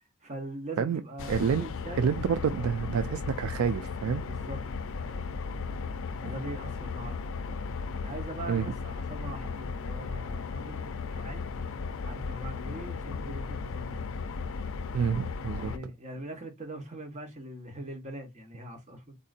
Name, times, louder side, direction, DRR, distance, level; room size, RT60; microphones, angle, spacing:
voice 1, 0.2-2.8 4.3-4.6 5.0-5.3 6.2-7.5 8.0-11.5 12.1-14.1 15.5-19.2, right 1 dB, 35° right, 1.2 m, -42 dB
sound 1, 1.2-15.8, left 5 dB, 60° left, 0.5 m, -36 dB
voice 2, 1.3-1.6 2.0-4.2 8.5-8.7 14.9-15.7, right 7 dB, 65° right, 0.3 m, -28 dB
3.8 x 2.7 x 2.4 m
head